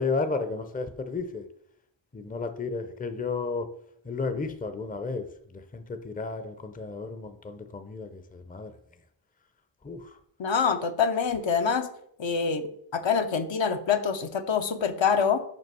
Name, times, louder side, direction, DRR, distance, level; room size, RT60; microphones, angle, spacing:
voice 1, 0.0-1.4 2.1-3.7 4.0-8.7 9.8-10.2, left 4 dB, 20° left, 9 dB, 0.6 m, -33 dB
voice 2, 10.4-11.9 12.2-12.6 12.9-15.4, left 6 dB, 70° left, 7 dB, 0.9 m, -25 dB
5.4 x 4.9 x 6.0 m, 0.68 s
wide cardioid pair, 130°, 47 cm